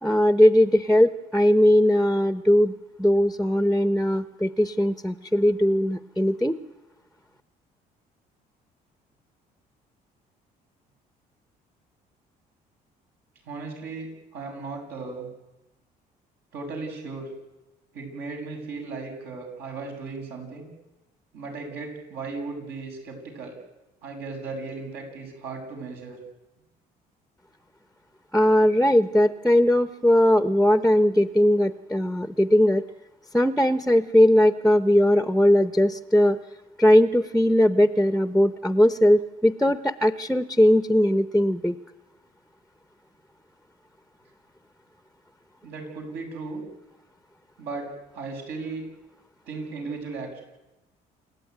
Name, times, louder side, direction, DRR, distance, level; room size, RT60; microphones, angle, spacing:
voice 1, 0.0-6.6 28.3-32.9 33.3-36.4 36.8-41.7, left 1 dB, ahead, 11 dB, 0.8 m, -19 dB
voice 2, 13.5-15.3 16.5-17.3 17.9-20.7 21.3-23.5 24.0-26.2 45.6-46.6 47.6-47.9 48.1-48.8 49.5-50.4, right 4 dB, 75° right, 1 dB, 7.0 m, -36 dB
28.5 x 13.5 x 9.4 m, 1.0 s
cardioid pair, 110°, 17 cm